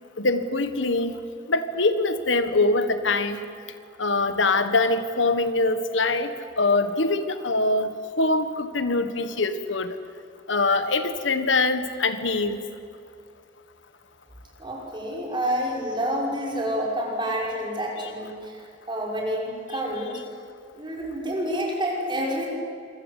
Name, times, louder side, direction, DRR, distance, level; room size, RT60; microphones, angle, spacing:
voice 1, 0.2-1.1 1.5-3.4 4.0-7.9 8.2-10.0 10.5-12.6 19.5-19.6, left 3 dB, 85° left, 10 dB, 1.6 m, -23 dB
voice 2, 14.6-20.2 20.8-22.5, equal, 25° right, -2 dB, 6.0 m, -28 dB
27.0 x 23.0 x 8.4 m, 2.4 s
head